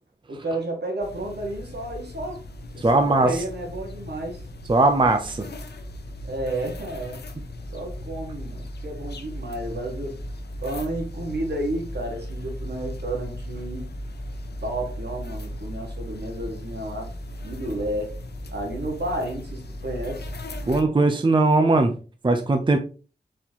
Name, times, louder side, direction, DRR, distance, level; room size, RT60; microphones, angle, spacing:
voice 1, 0.3-2.4 2.7-4.4 6.2-7.2 7.7-10.2 10.6-13.8 14.6-17.1 17.4-18.1 18.5-20.3, right 1 dB, 75° right, 1 dB, 1.6 m, -31 dB
sound 1, 1.0-20.8, left 1 dB, 75° left, 0.6 m, -37 dB
voice 2, 2.8-3.4 4.7-5.4 20.7-21.9 22.2-22.8, right 2 dB, 30° right, 6 dB, 0.6 m, -19 dB
4.2 x 4.2 x 2.9 m, 0.36 s
wide cardioid pair, 55°, 17 cm